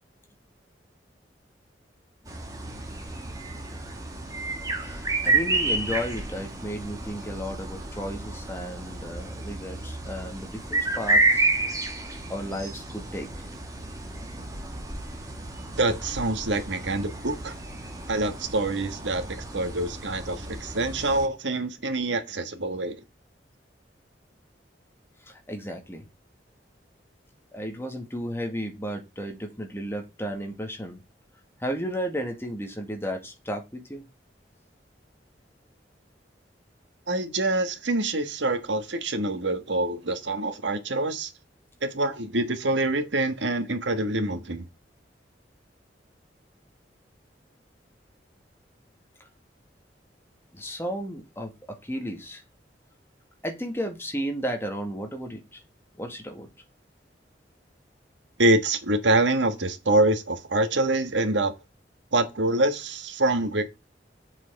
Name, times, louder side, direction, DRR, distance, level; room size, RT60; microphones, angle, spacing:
sound 1, 2.3-21.3, right 2 dB, 20° right, 1.8 m, -30 dB
voice 1, 4.8-11.5 12.3-13.3 25.2-26.1 27.5-31.0 31.6-34.0 50.5-51.5 51.8-52.4 53.4-55.6 56.0-56.5, equal, 15° left, 2.0 m, -33 dB
voice 2, 15.8-17.5 18.1-19.2 19.5-23.0 37.1-41.3 41.8-44.6 58.4-61.5 62.1-63.7, right 2 dB, 90° right, 1.5 m, -25 dB
7.5 x 6.3 x 4.7 m
head